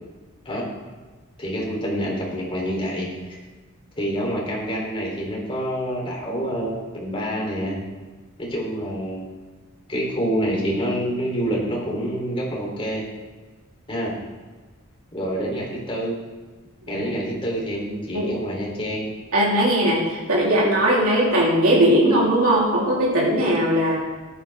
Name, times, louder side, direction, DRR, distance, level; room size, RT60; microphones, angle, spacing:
voice 1, 1.4-3.4 4.0-7.8 8.4-9.2 9.9-13.0 13.9-14.1 15.1-16.1 16.9-19.0, equal, 25° left, -3 dB, 3.3 m, -27 dB
voice 2, 19.3-24.0, right 1 dB, 70° right, -5 dB, 3.3 m, -19 dB
14.0 x 11.0 x 3.5 m, 1.3 s
head